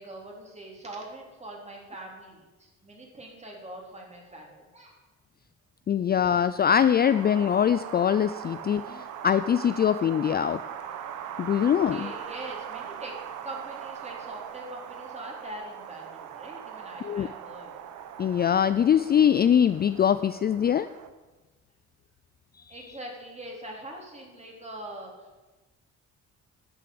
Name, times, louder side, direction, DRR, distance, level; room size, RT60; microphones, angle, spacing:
voice 1, 0.0-5.0 11.5-13.1 13.4-17.7 22.7-25.4, right 1 dB, 20° right, -1 dB, 3.4 m, -43 dB
voice 2, 5.9-10.6 11.4-12.1 17.0-17.3 18.2-20.9, left 8 dB, 35° left, 12 dB, 0.4 m, -23 dB
Wind, 7.0-21.1, right 9 dB, 85° right, 1.0 m, -40 dB
10.5 x 6.8 x 7.8 m, 1.2 s
cardioid pair, 90°, 30 cm